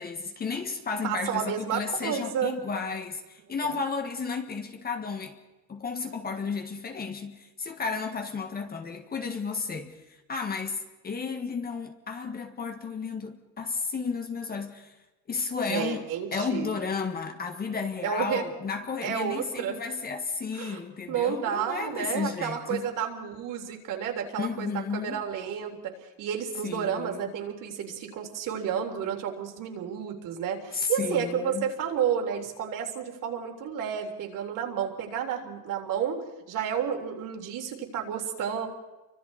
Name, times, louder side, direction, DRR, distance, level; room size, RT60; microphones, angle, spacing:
voice 1, 0.0-5.4 5.7-14.9 15.3-16.0 16.3-22.9 24.4-25.2 26.6-27.3 30.7-31.7, left 5 dB, 20° left, 1.6 m, -33 dB
voice 2, 1.0-2.6 3.6-3.8 15.7-16.7 18.0-18.5 19.0-19.8 20.5-20.8 21.1-38.7, right 8 dB, 50° right, 3.6 m, -31 dB
29.0 x 25.0 x 4.2 m
cardioid pair, 145°, 41 cm